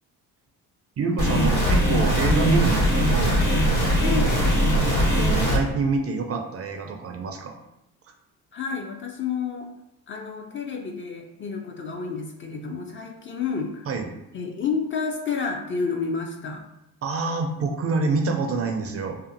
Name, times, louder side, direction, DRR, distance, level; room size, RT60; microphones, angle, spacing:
voice 1, 1.0-3.4 4.7-7.6 8.1-8.2 13.9-14.1 17.0-19.2, right 4 dB, 35° right, 4 dB, 0.4 m, -26 dB
sound 1, 1.2-5.6, equal, 65° left, 1.3 m, -20 dB
voice 2, 4.0-4.5 8.5-9.7 10.1-13.9 14.3-16.6, left 5 dB, 30° left, 2 dB, 0.4 m, -30 dB
2.6 x 2.4 x 2.5 m, 0.85 s
supercardioid pair, 60°, 41 cm